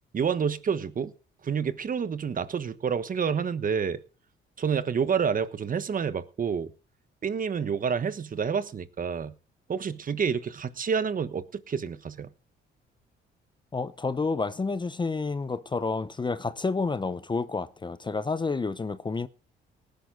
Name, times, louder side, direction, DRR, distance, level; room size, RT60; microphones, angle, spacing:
voice 1, 0.1-1.1 1.4-4.0 4.6-6.7 7.2-9.3 9.7-12.3, right 6 dB, 45° right, 1.2 m, -28 dB
voice 2, 13.7-19.3, left 4 dB, 25° left, 0.7 m, -29 dB
18.5 x 10.5 x 3.9 m
cardioid pair, 90°, 20 cm